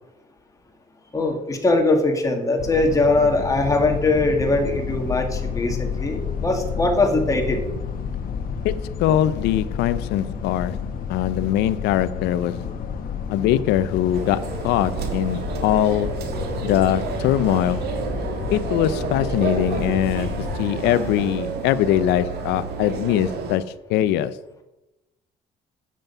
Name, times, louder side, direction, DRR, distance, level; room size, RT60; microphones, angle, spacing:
voice 1, 1.1-7.6, left 2 dB, 20° left, 2.1 m, -21 dB
sound 1, 2.6-20.7, left 6 dB, 55° left, 1.3 m, -30 dB
voice 2, 8.6-10.8 11.1-12.7 13.3-16.2 16.6-17.8 18.5-20.3 20.6-23.6 23.9-24.3, left 12 dB, 90° left, 0.6 m, -22 dB
sound 2, 14.1-23.6, right 5 dB, 70° right, 1.8 m, -30 dB
9.1 x 7.6 x 5.5 m
cardioid pair, 110°, 17 cm